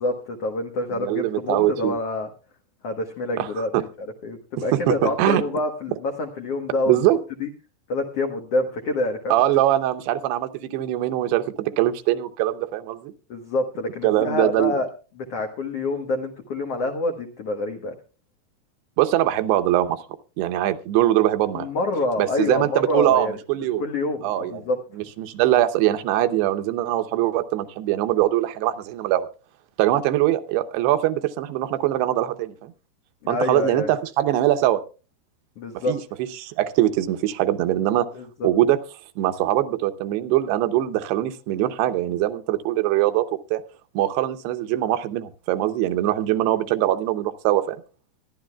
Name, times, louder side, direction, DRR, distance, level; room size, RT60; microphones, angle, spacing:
voice 1, 0.0-2.3 2.8-3.9 4.2-7.0 7.4-7.5 7.9-9.3 13.3-14.9 15.1-17.9 21.5-23.3 23.8-24.8 33.2-34.0 35.6-35.9 38.1-38.5 46.3-46.6, left 2 dB, 80° left, 4 dB, 1.3 m, -27 dB
voice 2, 0.9-1.9 3.4-3.8 4.7-5.4 6.9-7.2 9.3-13.1 14.0-14.7 19.0-20.0 20.4-21.7 22.2-23.8 24.2-24.6 25.2-29.3 29.8-32.7 33.3-34.8 35.9-36.0 36.4-38.1 38.4-38.8 39.2-43.6 44.0-47.8, right 13 dB, 80° right, 9 dB, 2.9 m, -22 dB
23.5 x 11.0 x 2.3 m, 0.33 s
omnidirectional pair, 4.7 m